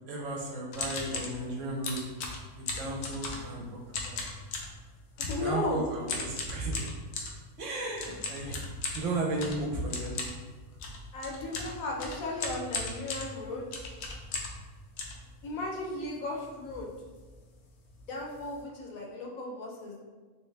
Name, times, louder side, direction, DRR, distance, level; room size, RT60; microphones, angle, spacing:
voice 1, 0.1-2.0 2.5-3.7 3.9-4.2 5.4-6.9 7.6-8.6 8.9-10.2, right 2 dB, 65° right, -2 dB, 0.9 m, -34 dB
sound 1, 0.7-1.4 1.8-3.6 3.9-4.8 5.2-5.5 6.1-7.4 8.0-14.6 15.0-15.8 16.3-16.4 16.6-16.9 17.1-17.3 17.9-18.0 18.3-18.6, left 3 dB, 90° left, 1.2 m, -37 dB
voice 2, 5.2-5.8 11.1-13.7 15.4-16.9 18.1-20.0, left 2 dB, 70° left, -1 dB, 1.1 m, -35 dB
3.3 x 2.9 x 3.2 m, 1.4 s
omnidirectional pair, 1.6 m